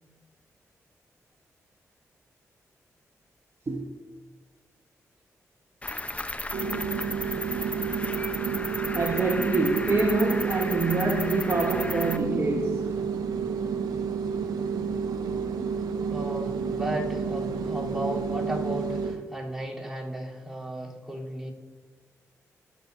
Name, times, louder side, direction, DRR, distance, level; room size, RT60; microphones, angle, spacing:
voice 1, 3.7-4.0 8.9-13.0, right 2 dB, 45° right, 1.2 m, -26 dB
Cricket, 5.8-12.2, left 2 dB, 20° left, 0.8 m, -34 dB
sound 1, 6.5-19.2, right 6 dB, 80° right, 0.9 m, -30 dB
voice 2, 16.1-21.5, equal, 5° right, 3.6 m, -34 dB
21.0 x 7.4 x 2.7 m
supercardioid pair, 45°, 6 cm